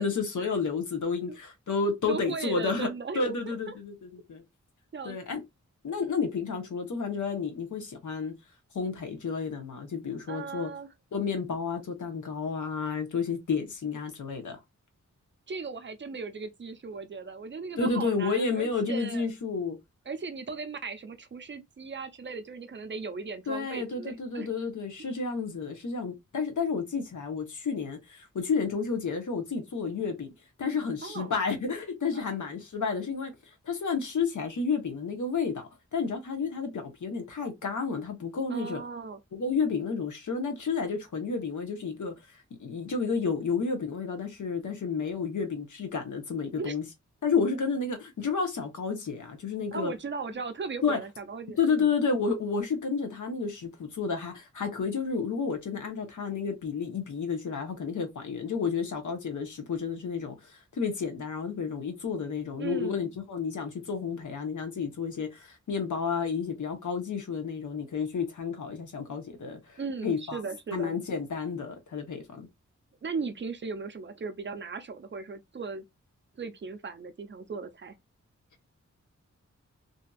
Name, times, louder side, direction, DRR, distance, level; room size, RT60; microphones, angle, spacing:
voice 1, 0.0-2.9 3.1-4.4 5.0-5.4 5.8-8.3 8.7-10.7 11.1-14.6 17.8-19.8 23.5-30.3 30.6-33.3 33.6-35.6 35.9-38.8 39.3-42.1 42.6-46.8 47.2-49.9 50.8-51.0 51.6-70.4 70.7-72.5, left 5 dB, 85° left, 0.9 m, -31 dB
voice 2, 2.1-3.7 4.9-5.2 10.3-10.9 15.5-19.2 20.1-24.5 31.0-31.3 32.1-32.2 38.5-39.2 46.6-46.8 49.7-51.9 62.6-63.1 69.8-70.9 73.0-75.8 76.4-77.9, right 4 dB, 40° right, 0.4 m, -37 dB
2.8 x 2.5 x 2.2 m
wide cardioid pair, 120°, 29 cm